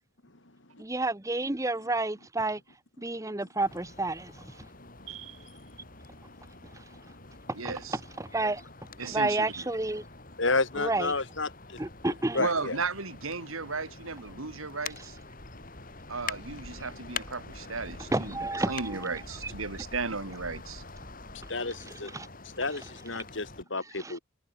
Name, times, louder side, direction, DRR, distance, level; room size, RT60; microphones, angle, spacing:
voice 1, 0.8-2.6 3.0-4.5 7.5-7.7 8.2-8.6 9.1-10.0 10.8-11.1 11.8-12.4 18.1-19.0 19.4-19.5 21.8-22.3 24.0-24.1, right 2 dB, 15° right, 0.9 m, -30 dB
sound 1, 3.7-23.6, left 4 dB, 40° left, 5.0 m, -45 dB
voice 2, 5.1-5.5 7.5-8.0 9.0-9.7 12.4-15.2 16.1-20.8, right 4 dB, 90° right, 2.7 m, -35 dB
voice 3, 10.4-11.8 12.3-12.8 21.5-22.1 22.4-24.2, left 3 dB, 65° left, 2.7 m, -31 dB
head